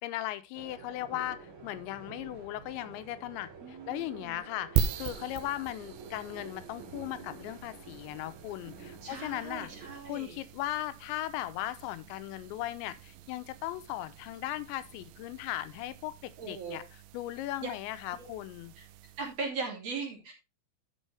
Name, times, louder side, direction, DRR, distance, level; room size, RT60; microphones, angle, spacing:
voice 1, 0.0-9.7 10.1-16.8 17.1-18.7, left 14 dB, 80° left, 3.0 m, -37 dB
sound 1, 0.5-10.0, right 4 dB, 55° right, 1.4 m, -49 dB
voice 2, 3.6-4.4 9.0-10.4 16.4-16.8 17.6-17.7 18.1-18.3 18.7-18.8 19.2-20.3, right 4 dB, 40° right, 3.3 m, -39 dB
sound 2, 4.8-19.5, right 8 dB, 75° right, 2.8 m, -40 dB
11.0 x 7.1 x 3.3 m
omnidirectional pair, 5.2 m